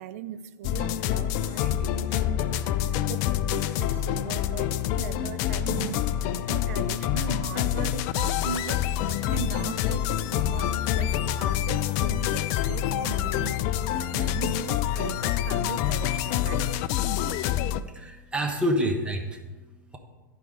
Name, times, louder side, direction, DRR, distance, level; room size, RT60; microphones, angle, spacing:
voice 1, 0.0-6.2 6.5-16.7, right 10 dB, 50° right, 13 dB, 0.5 m, -39 dB
sound 1, 0.6-17.8, left 11 dB, 35° left, 0.3 m, -27 dB
voice 2, 17.7-20.0, equal, 10° right, 3 dB, 0.9 m, -29 dB
12.0 x 4.8 x 5.2 m, 1.3 s
figure-of-eight pair, 90°, 10 cm